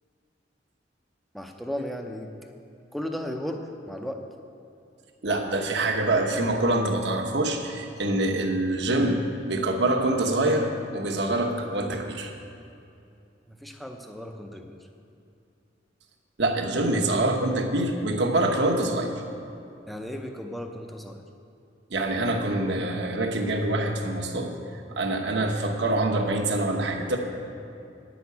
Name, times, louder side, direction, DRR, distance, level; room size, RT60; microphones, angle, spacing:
voice 1, 1.3-2.3 2.9-4.2 13.5-14.8 19.9-21.2, equal, ahead, 4 dB, 0.6 m, -35 dB
voice 2, 5.2-9.2 9.5-12.3 16.4-19.1 21.9-24.5 24.9-27.2, right 2 dB, 65° right, 2 dB, 1.1 m, -25 dB
9.4 x 6.2 x 8.3 m, 2.6 s
head